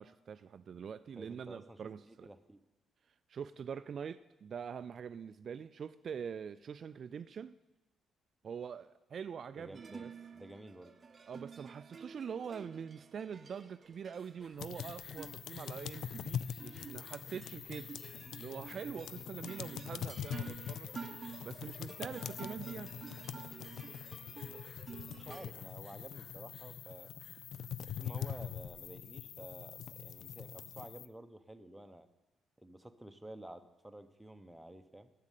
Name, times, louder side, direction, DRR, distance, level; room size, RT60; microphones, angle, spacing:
voice 1, 0.0-2.3 3.3-7.5 8.4-10.1 11.3-17.9 18.4-20.9 21.4-22.9, right 7 dB, 50° right, 0.3 m, -44 dB
voice 2, 1.2-2.6 9.5-10.1 10.3-10.9 25.1-27.1 27.8-32.1 32.6-35.1, right 1 dB, 5° right, 0.9 m, -51 dB
sound 1, 9.7-25.5, right 5 dB, 35° right, 0.7 m, -51 dB
sound 2, 14.0-29.3, left 2 dB, 40° left, 1.5 m, -64 dB
sound 3, 14.6-31.1, left 9 dB, 70° left, 0.4 m, -44 dB
9.6 x 7.5 x 9.2 m
cardioid pair, 90°, 0 cm